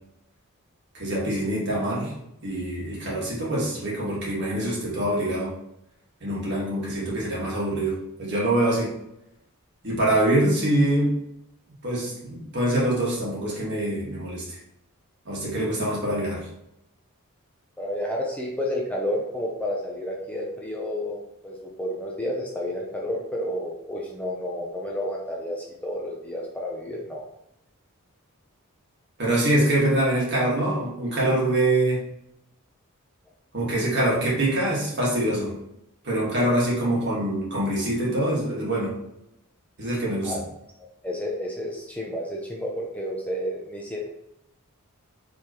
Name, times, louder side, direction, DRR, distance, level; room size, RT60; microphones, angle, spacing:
voice 1, 0.9-2.1 2.4-5.5 6.2-9.0 9.8-11.2 11.8-14.6 15.3-16.4 29.2-32.0 33.5-35.5 36.0-38.9 39.8-40.3, right 1 dB, 50° right, -5 dB, 1.8 m, -24 dB
voice 2, 17.8-27.2 40.2-40.4 41.0-44.1, left 1 dB, 5° left, -2 dB, 0.5 m, -31 dB
4.9 x 3.5 x 3.0 m, 0.81 s
head